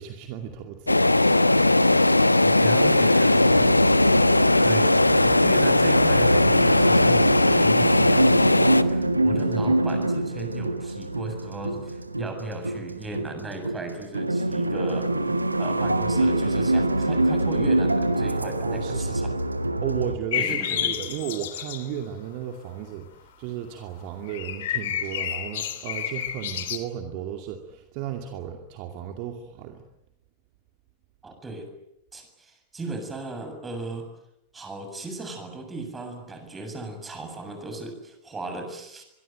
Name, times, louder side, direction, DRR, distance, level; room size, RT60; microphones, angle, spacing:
voice 1, 0.0-1.5 18.6-19.1 19.8-29.8, right 9 dB, 45° right, 5 dB, 2.4 m, -34 dB
sound 1, 0.9-8.8, left 2 dB, 85° left, 1.0 m, -19 dB
voice 2, 2.4-3.7 4.6-4.9 5.2-15.1 15.6-19.3 20.4-20.9 31.2-31.7 32.1-34.1 34.5-39.0, right 2 dB, 15° right, 6 dB, 7.5 m, -36 dB
sound 2, 3.3-20.2, right 2 dB, 85° right, 1.5 m, -25 dB
sound 3, 20.3-21.9 24.3-26.8, left 10 dB, 55° left, 3.0 m, -30 dB
25.5 x 23.0 x 9.3 m, 0.84 s
figure-of-eight pair, 90°, 0 cm